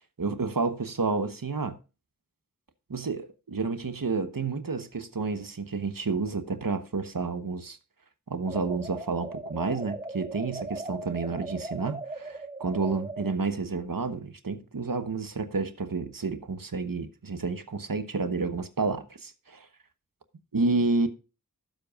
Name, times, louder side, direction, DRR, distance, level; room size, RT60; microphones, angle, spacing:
voice 1, 0.2-1.8 2.9-7.8 8.3-19.7 20.5-21.1, right 4 dB, 80° right, 1.2 m, -30 dB
sound 1, 8.5-13.3, right 2 dB, 20° right, 0.7 m, -38 dB
17.0 x 7.7 x 2.5 m
wide cardioid pair, 50°, 33 cm